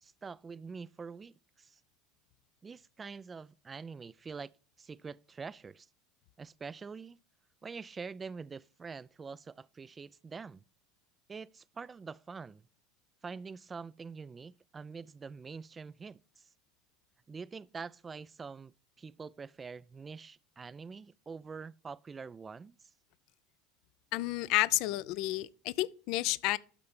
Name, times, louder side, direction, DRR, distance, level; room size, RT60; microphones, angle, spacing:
voice 1, 0.0-1.8 2.6-4.5 4.8-5.9 6.4-7.2 7.6-10.6 11.3-12.7 13.2-16.5 17.3-22.8, right 5 dB, 20° right, 0.3 m, -45 dB
voice 2, 24.1-26.6, left 18 dB, 55° left, 0.4 m, -31 dB
12.0 x 4.3 x 5.4 m
figure-of-eight pair, 75°, 0 cm